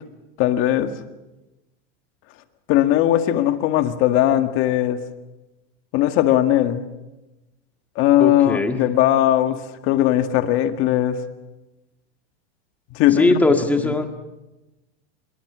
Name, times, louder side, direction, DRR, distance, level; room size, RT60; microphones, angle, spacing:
voice 1, 0.4-0.9 2.7-5.0 5.9-6.8 8.0-11.2 12.9-13.3 13.8-13.9, left 13 dB, 40° left, 8 dB, 1.8 m, -19 dB
voice 2, 8.2-8.8 13.1-14.1, left 2 dB, 5° left, 5 dB, 1.8 m, -20 dB
25.5 x 22.5 x 6.2 m, 1.0 s
supercardioid pair, 155°, 33 cm